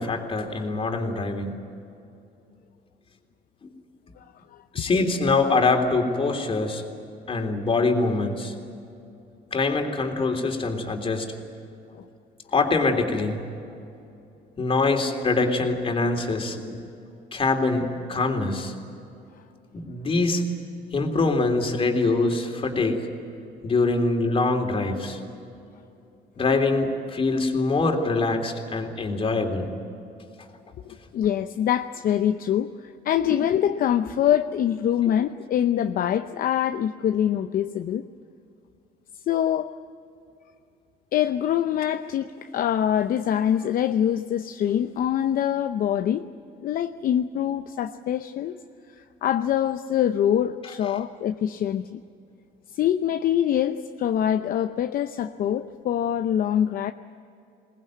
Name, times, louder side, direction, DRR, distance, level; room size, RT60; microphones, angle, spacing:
voice 1, 0.0-1.5 4.7-6.8 7.3-8.5 9.5-11.3 12.5-13.4 14.6-16.8 17.3-18.7 19.7-20.4 20.9-23.0 23.6-25.2 26.4-29.7, left 3 dB, 35° left, 4 dB, 3.4 m, -24 dB
voice 2, 30.9-38.0 39.3-39.7 41.1-46.2 46.6-48.6 49.2-52.0 52.7-56.9, left 10 dB, 60° left, 8 dB, 0.8 m, -24 dB
22.0 x 19.5 x 9.3 m, 2.6 s
cardioid pair, 110°, 17 cm